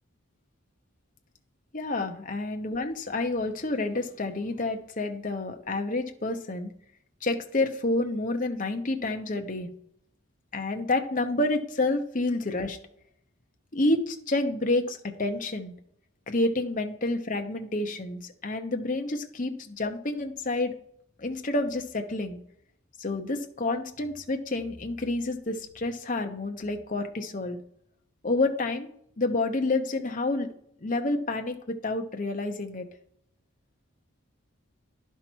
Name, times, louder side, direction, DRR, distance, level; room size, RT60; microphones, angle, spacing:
voice 1, 1.7-6.7 7.2-9.7 10.5-12.8 13.7-15.7 16.3-20.7 21.2-22.4 23.0-27.6 28.2-28.9 29.2-30.5 30.8-32.9, left 2 dB, 40° left, 5 dB, 0.9 m, -29 dB
11.0 x 5.8 x 4.5 m, 0.68 s
head